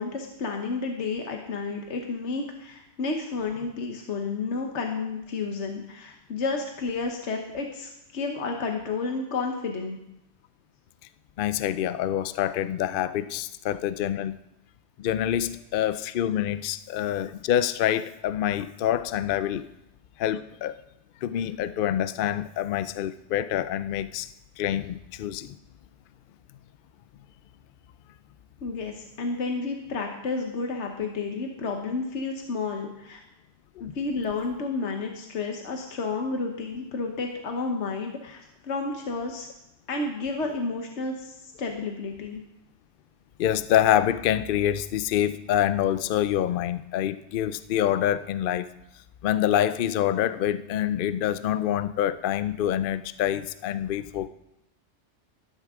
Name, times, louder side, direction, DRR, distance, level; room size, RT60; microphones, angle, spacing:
voice 1, 0.0-10.0 28.6-33.2 33.8-39.5 39.9-42.4, left 4 dB, 80° left, 3 dB, 1.4 m, -31 dB
voice 2, 11.4-14.4 15.0-19.7 20.2-20.8 21.2-24.3 24.6-25.6 33.8-33.9 43.4-48.7 49.2-54.3, left 11 dB, 60° left, 14 dB, 0.6 m, -26 dB
13.0 x 12.5 x 3.6 m, 0.85 s
omnidirectional pair, 1.2 m